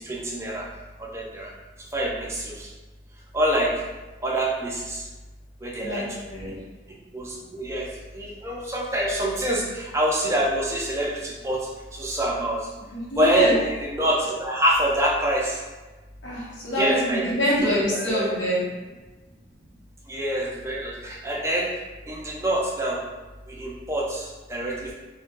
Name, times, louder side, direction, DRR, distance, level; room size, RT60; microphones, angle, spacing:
voice 1, 0.1-0.6 1.1-1.5 1.9-2.7 3.3-3.7 4.2-5.0 5.6-6.0 7.1-7.9 8.1-11.6 11.9-12.6 13.2-15.6 16.8-18.3 20.1-21.7 22.1-23.0 23.6-24.9, right 1 dB, 15° right, -4 dB, 0.3 m, -26 dB
voice 2, 5.8-6.5 12.9-13.5 16.2-18.6, equal, 85° left, -7 dB, 0.8 m, -25 dB
2.2 x 2.1 x 2.8 m, 1.2 s
head